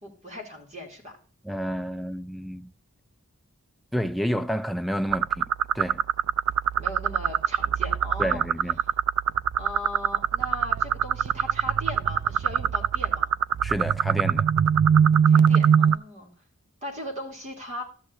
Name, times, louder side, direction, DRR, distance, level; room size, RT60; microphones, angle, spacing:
voice 1, 0.0-1.2 6.8-8.4 8.8-8.9 9.6-13.3 15.2-16.3 16.8-17.8, left 1 dB, 35° right, 2.7 m, -38 dB
voice 2, 1.4-2.7 3.9-5.5 5.7-6.0 8.2-8.8 13.6-14.5, equal, ahead, 0.4 m, -29 dB
sound 1, 5.1-16.0, right 8 dB, 90° right, 0.4 m, -23 dB
13.0 x 8.2 x 2.6 m
head